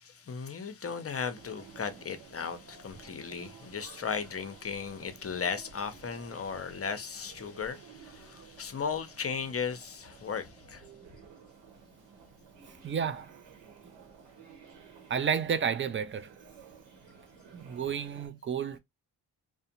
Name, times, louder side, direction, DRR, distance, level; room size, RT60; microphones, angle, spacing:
voice 1, 0.0-10.8, left 6 dB, 35° left, 0.6 m, -36 dB
sound 1, 1.3-18.3, right 5 dB, 85° right, 1.0 m, -54 dB
voice 2, 12.8-13.3 15.1-16.3 17.5-18.8, right 7 dB, 30° right, 0.4 m, -31 dB
2.4 x 2.2 x 2.8 m
supercardioid pair, 60°, 44 cm